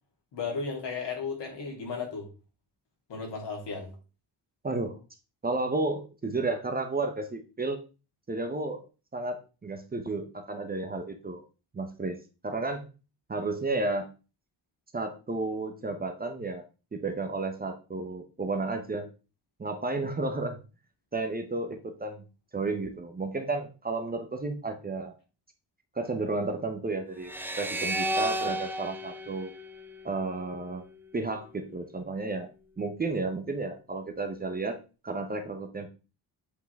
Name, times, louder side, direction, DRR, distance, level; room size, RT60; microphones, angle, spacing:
voice 1, 0.3-2.3 3.1-3.9, left 5 dB, 75° left, -1 dB, 3.2 m, -34 dB
voice 2, 4.6-5.0 5.4-7.8 8.3-8.8 9.1-11.4 11.7-12.2 12.4-12.9 13.3-14.1 14.9-16.6 16.9-19.1 19.6-20.6 21.1-22.2 22.5-25.1 25.9-27.3 27.6-29.5 30.0-30.8 31.1-32.5 32.8-34.8 35.0-35.9, right 3 dB, 20° right, 6 dB, 0.8 m, -32 dB
sound 1, 27.2-30.5, right 1 dB, 5° right, 0.4 m, -33 dB
8.1 x 5.4 x 3.5 m, 0.33 s
wide cardioid pair, 175°, 43 cm